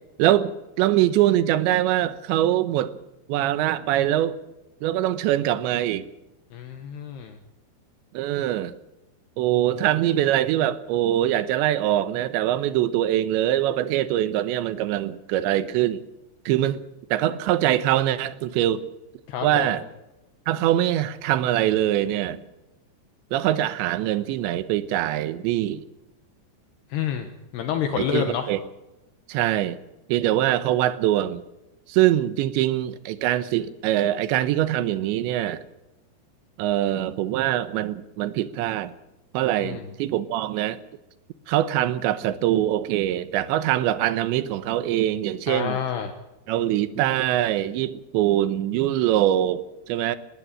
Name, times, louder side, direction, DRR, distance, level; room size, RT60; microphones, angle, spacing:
voice 1, 0.2-2.9 3.3-4.4 4.8-6.1 8.1-8.7 9.4-16.0 16.5-16.8 17.1-18.8 19.4-19.8 20.5-22.4 23.3-25.8 28.0-28.6 29.3-29.8 30.1-31.4 31.9-35.6 36.6-38.9 39.3-40.8 41.5-45.8 46.5-50.2, right 13 dB, 80° right, 14 dB, 3.2 m, -23 dB
voice 2, 6.5-7.4 19.3-19.8 26.9-27.3 27.5-28.5 39.6-39.8 45.5-46.1, left 8 dB, 70° left, 6 dB, 3.2 m, -28 dB
20.0 x 18.0 x 7.6 m, 0.97 s
omnidirectional pair, 5.3 m